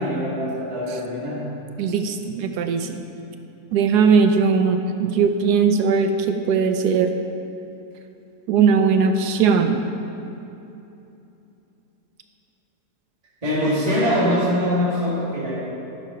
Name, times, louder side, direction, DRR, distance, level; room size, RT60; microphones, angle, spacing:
voice 1, 0.0-1.5 13.4-15.6, equal, 20° right, -9 dB, 2.2 m, -23 dB
voice 2, 1.8-3.0 3.7-7.1 8.5-9.8, right 5 dB, 85° right, 7 dB, 1.2 m, -19 dB
13.0 x 6.7 x 5.6 m, 2.9 s
omnidirectional pair, 1.7 m